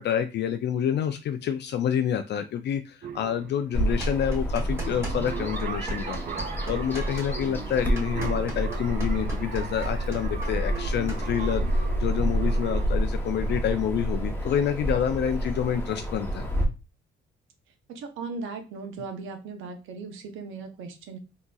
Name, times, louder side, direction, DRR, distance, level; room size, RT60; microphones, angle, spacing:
voice 1, 0.0-16.5, left 9 dB, 60° left, 7 dB, 0.4 m, -28 dB
sound 1, 3.0-12.9, right 6 dB, 45° right, 0.5 m, -39 dB
Bird vocalization bird call bird song, 3.7-16.6, right 1 dB, 10° left, 0.8 m, -29 dB
sound 2, 4.0-5.3 5.6-11.2, right 1 dB, 15° right, 1.8 m, -39 dB
voice 2, 17.9-21.2, right 4 dB, 85° right, 6 dB, 0.8 m, -37 dB
3.9 x 2.8 x 2.3 m, 0.29 s
cardioid pair, 90°, 20 cm